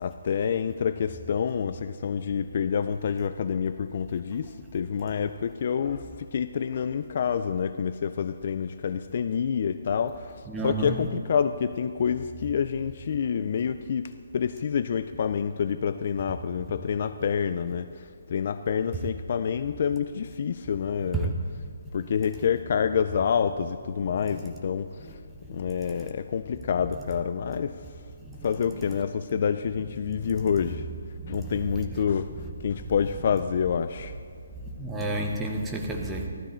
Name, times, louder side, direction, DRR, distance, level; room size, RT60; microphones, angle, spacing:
voice 1, 0.0-10.4 10.6-17.9 18.3-21.3 21.9-24.9 25.5-27.7 28.4-30.8 31.3-32.3 32.6-34.1, left 7 dB, 35° left, 12 dB, 0.3 m, -27 dB
voice 2, 10.5-11.0 21.1-21.3 25.1-25.2 25.5-25.6 28.2-28.5 30.1-30.2 31.2-31.6 34.6-36.3, right 2 dB, 5° right, 0 dB, 0.8 m, -31 dB
15.0 x 12.5 x 4.4 m, 2.1 s
hypercardioid pair, 175°, 0 cm